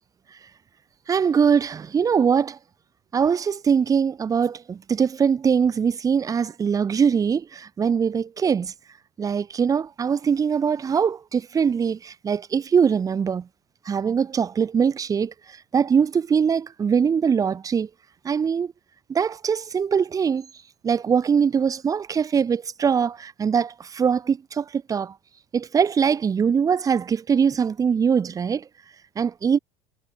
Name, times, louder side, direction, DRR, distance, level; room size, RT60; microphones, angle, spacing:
voice 1, 1.1-2.6 3.1-8.7 9.2-13.5 13.8-15.3 15.7-17.9 18.2-18.7 19.1-20.5 20.8-25.1 25.5-28.6 29.1-29.6, right 6 dB, 25° right, 1.5 m, -22 dB
supercardioid pair, 115°, 13 cm